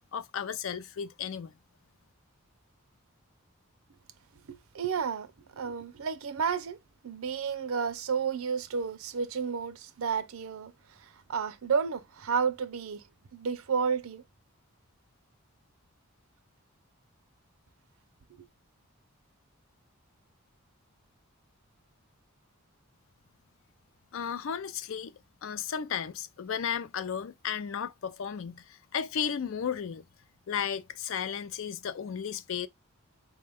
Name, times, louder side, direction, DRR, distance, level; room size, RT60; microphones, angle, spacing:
voice 1, 0.1-1.5 24.1-30.0 30.5-32.7, left 7 dB, 60° left, 0.4 m, -34 dB
voice 2, 4.5-5.3 5.5-6.8 7.0-10.7 11.0-13.0 13.3-14.2, right 6 dB, 70° right, 0.5 m, -31 dB
4.1 x 2.2 x 3.4 m
head